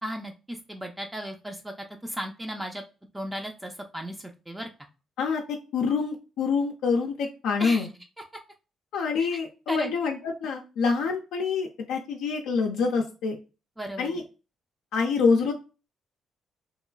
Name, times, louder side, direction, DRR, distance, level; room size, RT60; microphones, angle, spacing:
voice 1, 0.0-1.7 2.0-2.8 3.1-4.7 7.6-7.9 9.2-9.4 9.7-9.9 13.8-14.2, equal, 10° right, 2 dB, 0.4 m, -35 dB
voice 2, 5.7-7.9 8.9-13.4 14.0-14.2 14.9-15.5, left 5 dB, 90° left, 1 dB, 0.3 m, -26 dB
2.9 x 2.3 x 2.2 m, 0.32 s
cardioid pair, 90°, 0 cm